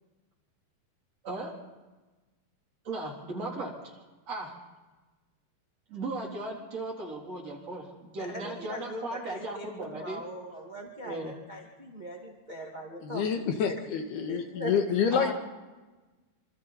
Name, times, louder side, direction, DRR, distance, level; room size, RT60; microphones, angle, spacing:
voice 1, 1.2-1.6 2.8-4.0 4.3-4.6 5.9-10.2 11.0-11.3 15.1-15.3, right 2 dB, 40° right, -2 dB, 4.6 m, -37 dB
voice 2, 8.2-13.2 14.3-14.7, right 1 dB, 20° right, 0 dB, 1.2 m, -41 dB
voice 3, 13.0-15.3, left 7 dB, 75° left, 5 dB, 3.7 m, -28 dB
26.5 x 26.0 x 4.2 m, 1.2 s
omnidirectional pair, 4.6 m